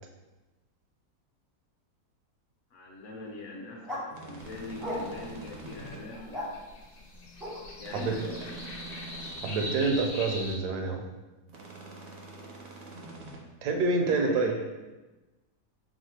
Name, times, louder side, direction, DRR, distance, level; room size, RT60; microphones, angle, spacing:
voice 1, 2.7-6.8 7.8-8.7 13.9-14.6, left 2 dB, 60° left, -2 dB, 0.9 m, -43 dB
sound 1, 3.8-4.0 4.8-5.3 6.1-6.5 7.4-7.6, left 1 dB, ahead, 0.5 m, -36 dB
sound 2, 4.1-6.0 7.8-9.7 11.5-13.4, right 2 dB, 60° right, 0.6 m, -45 dB
sound 3, 4.4-10.6, left 1 dB, 80° left, 0.3 m, -43 dB
voice 2, 7.9-8.4 9.4-11.0 13.6-14.5, right 3 dB, 75° right, 3 dB, 1.1 m, -27 dB
4.8 x 2.0 x 4.3 m, 1.1 s
omnidirectional pair, 1.8 m